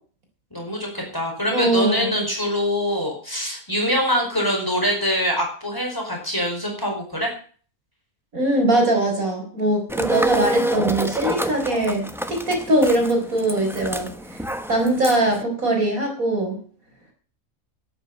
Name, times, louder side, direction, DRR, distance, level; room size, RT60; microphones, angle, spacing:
voice 1, 0.5-7.3, equal, 15° left, 0 dB, 5.0 m, -24 dB
voice 2, 1.5-2.1 8.3-14.4 14.7-16.6, right 1 dB, 70° right, 2 dB, 5.1 m, -21 dB
sound 1, 9.9-15.4, equal, ahead, 0.9 m, -28 dB
12.0 x 9.0 x 9.0 m, 0.43 s
omnidirectional pair, 1.5 m